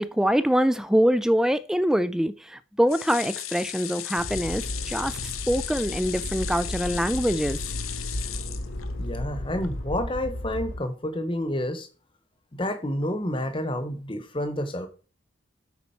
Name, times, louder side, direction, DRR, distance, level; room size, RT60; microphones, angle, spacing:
voice 1, 0.0-5.2 5.5-7.6, equal, 5° right, 0.3 m, -24 dB
sound 1, 2.9-9.2 9.6-9.7 10.0-10.1, left 12 dB, 90° left, 0.8 m, -36 dB
Motor vehicle (road), 4.2-10.8, left 1 dB, 65° left, 1.3 m, -34 dB
voice 2, 9.0-11.9 12.5-14.9, left 1 dB, 25° left, 1.0 m, -29 dB
8.7 x 4.2 x 5.7 m
head